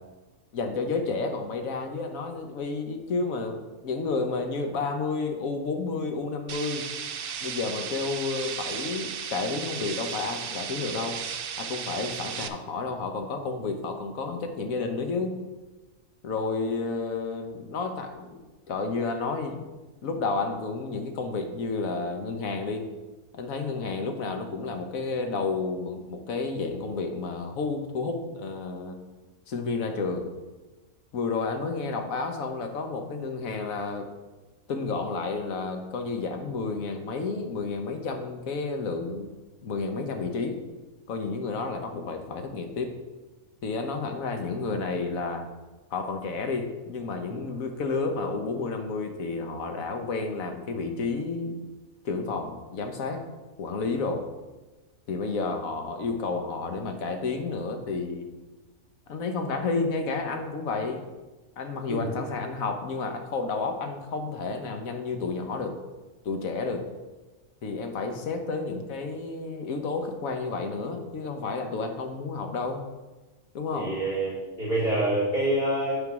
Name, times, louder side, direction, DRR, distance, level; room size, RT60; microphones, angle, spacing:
voice 1, 0.5-6.9 7.4-11.2 11.6-15.3 16.2-19.6 20.0-22.9 23.3-29.0 29.5-30.3 31.1-34.1 34.7-39.3 39.6-40.6 41.1-42.9 43.6-45.5 45.9-51.6 52.0-53.2 53.6-54.3 55.1-58.3 59.1-61.0 61.6-65.8 66.2-66.9 67.6-72.8 73.5-73.9, left 4 dB, 75° left, 5 dB, 1.4 m, -31 dB
sound 1, 6.5-12.5, right 7 dB, 60° right, 0.6 m, -35 dB
voice 2, 73.7-76.0, right 1 dB, 40° left, -5 dB, 2.9 m, -27 dB
8.9 x 3.9 x 6.1 m, 1.2 s
omnidirectional pair, 1.4 m